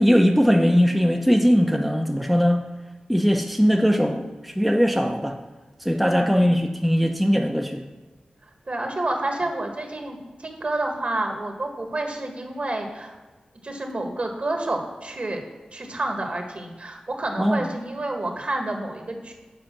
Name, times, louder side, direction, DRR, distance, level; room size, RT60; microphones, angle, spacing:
voice 1, 0.0-2.6 3.1-5.4 5.8-7.8 17.4-17.7, equal, ahead, 2 dB, 0.6 m, -20 dB
voice 2, 6.0-6.5 8.7-13.1 13.6-15.4 15.7-19.3, right 2 dB, 50° right, 3 dB, 1.6 m, -29 dB
7.8 x 5.1 x 5.9 m, 1.2 s
cardioid pair, 55°, 3 cm